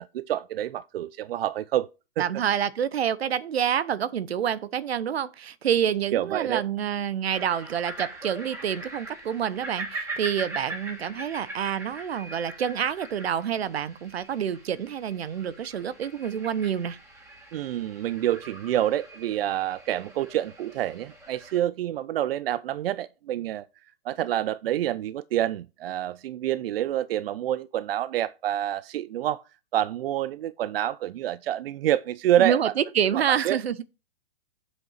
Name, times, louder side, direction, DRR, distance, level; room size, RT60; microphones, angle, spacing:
voice 1, 0.0-1.9 2.2-2.3 6.1-6.6 17.5-23.7 24.0-29.4 29.7-32.7 33.1-33.6, right 12 dB, 65° right, 0.5 m, -27 dB
voice 2, 2.2-17.0 32.4-33.8, right 9 dB, 85° right, 0.9 m, -27 dB
sound 1, 7.3-21.6, right 2 dB, 10° right, 2.1 m, -41 dB
7.7 x 5.5 x 5.7 m
hypercardioid pair, 145°, 31 cm